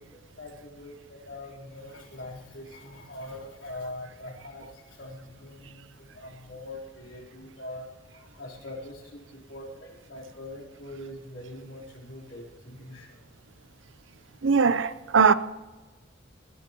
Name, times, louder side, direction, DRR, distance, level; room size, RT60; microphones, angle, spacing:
voice 1, 0.0-13.2, left 1 dB, 90° left, 4.0 m, -43 dB
voice 2, 14.4-15.3, right 5 dB, 75° right, 0.7 m, -20 dB
20.5 x 15.5 x 3.0 m
head